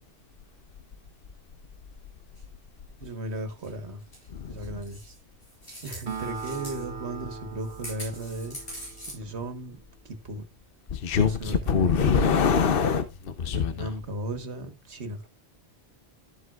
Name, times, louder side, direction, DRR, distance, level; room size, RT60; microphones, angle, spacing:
sound 1, 2.4-2.5 3.5-3.7 4.0-4.3 4.6-6.9 7.6-9.1, equal, 75° left, 7.1 m, -43 dB
voice 1, 3.0-4.0 4.5-5.2 5.8-8.8 9.1-10.5 11.2-12.4 13.5-15.3, right 1 dB, 85° right, 1.8 m, -36 dB
voice 2, 4.3-4.7 10.9-13.9, left 6 dB, 60° left, 1.0 m, -24 dB
Acoustic guitar, 6.1-9.6, right 4 dB, 60° right, 1.3 m, -40 dB
13.5 x 7.8 x 2.4 m
omnidirectional pair, 1.1 m